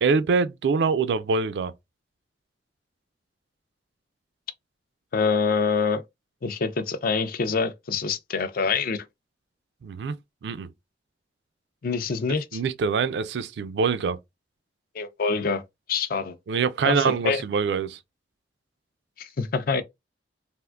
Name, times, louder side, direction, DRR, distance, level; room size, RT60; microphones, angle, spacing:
voice 1, 0.0-1.7 9.8-10.2 10.4-10.7 12.5-14.2 16.5-18.0, right 5 dB, 70° right, 0.3 m, -24 dB
voice 2, 5.1-6.0 6.4-9.0 11.8-12.6 14.9-15.6 15.9-16.3 16.9-17.4 19.2-19.8, left 5 dB, 55° left, 0.4 m, -25 dB
3.5 x 2.5 x 2.3 m
head